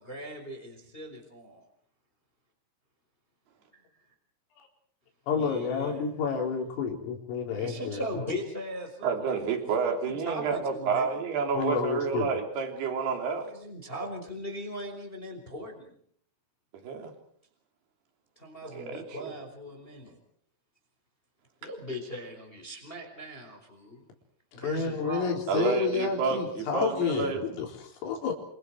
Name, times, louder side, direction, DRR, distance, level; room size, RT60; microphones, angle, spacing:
voice 1, 0.0-1.6 5.3-6.2 6.4-6.5 7.5-11.2 13.3-15.9 18.4-20.2 21.6-24.1 24.5-25.3, equal, 10° left, 3 dB, 4.3 m, -39 dB
voice 2, 5.3-8.0 11.5-12.3 24.5-28.3, left 6 dB, 90° left, 1 dB, 6.7 m, -30 dB
voice 3, 9.0-13.5 16.8-17.1 18.7-19.3 25.5-27.4, right 5 dB, 55° right, 3 dB, 5.2 m, -29 dB
28.5 x 27.0 x 4.8 m, 0.63 s
omnidirectional pair, 5.7 m